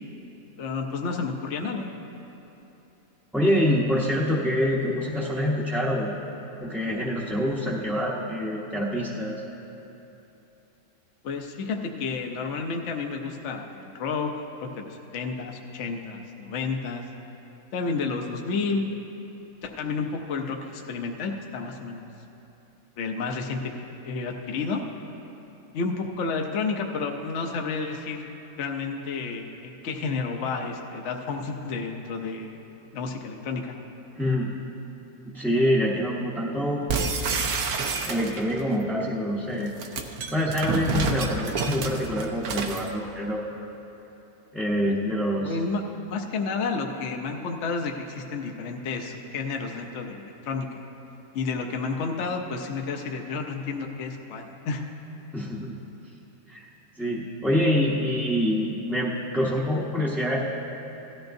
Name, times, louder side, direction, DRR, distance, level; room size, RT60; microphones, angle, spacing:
voice 1, 0.6-1.9 11.2-14.3 14.6-17.1 17.7-18.9 19.6-22.1 23.0-23.7 24.0-24.8 25.7-28.3 28.6-32.5 32.9-33.7 45.4-45.8 46.1-50.8 51.3-54.9, left 4 dB, 60° left, 2 dB, 0.9 m, -31 dB
voice 2, 3.3-6.1 6.6-9.4 34.1-34.5 35.3-36.8 38.0-39.7 40.3-43.4 44.5-45.6 55.3-55.8 56.5-56.7 57.0-60.4, equal, ahead, -6 dB, 0.6 m, -26 dB
sound 1, 36.9-38.6 39.6-42.9, right 4 dB, 80° right, 1.2 m, -28 dB
17.0 x 13.0 x 2.6 m, 3.0 s
omnidirectional pair, 1.5 m